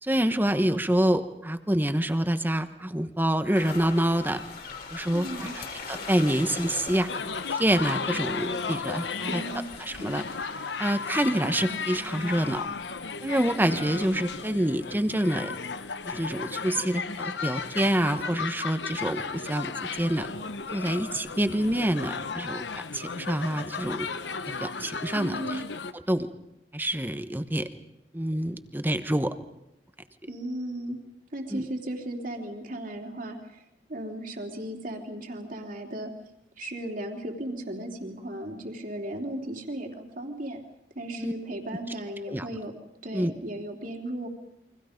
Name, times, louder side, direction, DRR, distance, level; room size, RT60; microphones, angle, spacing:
voice 1, 0.0-4.4 4.9-7.1 7.6-9.4 9.8-10.2 10.8-12.7 13.2-15.5 16.1-20.3 20.7-22.6 22.9-24.1 24.6-25.6 26.1-26.3 26.7-27.7 28.1-29.3 31.5-31.6 41.2-41.3 42.3-42.5 43.1-43.3, right 1 dB, 10° right, 9 dB, 1.1 m, -27 dB
sound 1, 3.5-12.7, left 4 dB, 60° left, 3.9 m, -42 dB
voice 2, 5.1-5.5 9.3-9.6 25.1-25.6 30.3-31.0 31.3-33.6 33.9-36.1 36.6-40.6 40.9-42.7 43.0-44.3, right 1 dB, 50° right, 2 dB, 3.3 m, -36 dB
sound 2, 7.1-25.9, left 5 dB, 80° left, 1.0 m, -35 dB
29.5 x 24.0 x 5.3 m, 0.82 s
head